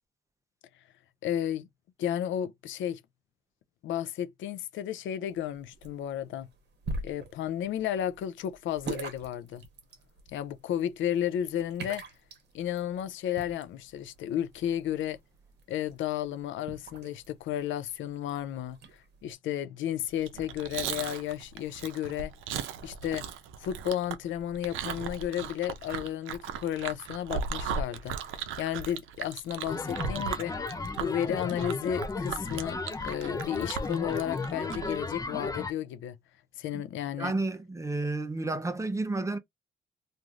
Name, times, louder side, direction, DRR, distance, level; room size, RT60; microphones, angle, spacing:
voice 1, 1.2-1.7 2.0-3.0 3.8-6.5 7.0-9.6 10.3-12.0 12.5-15.2 15.7-22.3 22.8-23.3 23.6-30.5 31.0-32.8 33.0-36.2 36.6-37.3, left 10 dB, 75° left, 0.5 m, -33 dB
sound 1, 5.3-19.3, right 3 dB, 60° right, 1.0 m, -45 dB
Chewing mastication, 20.2-35.0, right 7 dB, 85° right, 0.6 m, -37 dB
sound 2, 29.7-35.7, left 3 dB, 20° left, 0.4 m, -34 dB
voice 2, 37.2-39.4, right 2 dB, 15° right, 0.7 m, -31 dB
3.0 x 2.6 x 2.4 m
cardioid pair, 90°, 20 cm